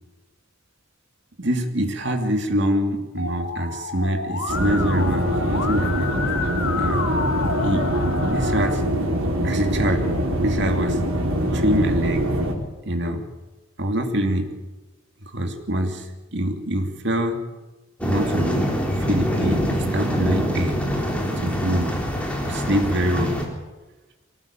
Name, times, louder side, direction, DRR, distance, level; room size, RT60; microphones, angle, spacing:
voice 1, 1.4-6.2 6.7-7.0 7.6-7.9 8.3-8.9 9.4-10.1 10.4-11.1 11.5-12.3 12.8-13.3 13.8-14.6 15.3-17.4 18.0-18.7 19.1-20.8 21.4-22.0 22.4-23.4, equal, 55° right, 4 dB, 2.9 m, -24 dB
Musical instrument, 3.2-8.7, left 3 dB, 80° left, 2.6 m, -29 dB
sound 1, 4.5-12.5, equal, 90° right, 4.2 m, -23 dB
sound 2, 18.0-23.5, equal, 5° left, 3.8 m, -24 dB
23.5 x 18.5 x 9.0 m, 1.1 s
head